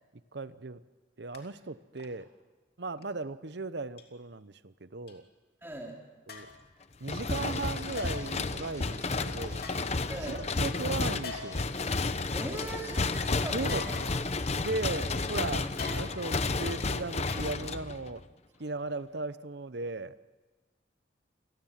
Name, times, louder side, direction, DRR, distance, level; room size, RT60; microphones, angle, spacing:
voice 1, 0.3-0.8 1.2-2.3 2.8-5.2 6.3-6.5 7.0-9.6 10.2-11.7 13.5-13.9 14.6-18.2 18.6-20.1, right 3 dB, 60° right, 14 dB, 0.8 m, -37 dB
sound 1, 1.3-1.5 2.0-2.2 3.0-3.1 4.0-4.1 5.1-5.2 6.3-6.7 8.0-8.4 9.6-10.4 11.2-11.7 12.2-12.3 12.6-12.8 13.7-14.5 15.8-16.4 17.3-17.9 18.2-18.3, left 4 dB, 50° left, 3.1 m, -43 dB
voice 2, 5.6-6.0 10.1-10.4 12.3-14.0 14.8-15.2 15.5-15.8, right 1 dB, 10° right, -1 dB, 3.3 m, -41 dB
sound 2, 7.0-18.2, left 3 dB, 35° left, 0.8 m, -32 dB
sound 3, 7.3-15.2, left 1 dB, 15° left, 2.3 m, -50 dB
28.5 x 19.5 x 7.4 m, 1.3 s
head